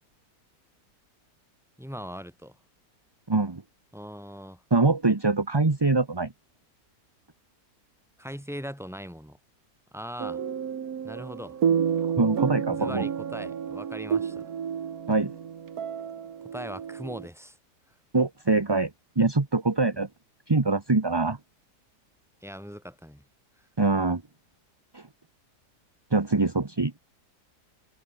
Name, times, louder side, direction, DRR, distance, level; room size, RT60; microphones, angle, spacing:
voice 1, 1.8-2.6 3.9-4.6 8.2-9.4 9.9-10.4 11.0-11.6 12.7-14.4 16.5-17.6 22.4-23.2, equal, ahead, 6.2 m, -40 dB
voice 2, 3.3-3.6 4.7-6.3 12.2-13.0 15.1-15.3 18.1-18.9 19.2-20.1 20.5-21.4 23.8-24.2 24.9-25.1 26.1-26.9, right 3 dB, 20° right, 1.0 m, -23 dB
sound 1, 10.2-17.3, right 7 dB, 65° right, 1.8 m, -30 dB
omnidirectional pair, 1.8 m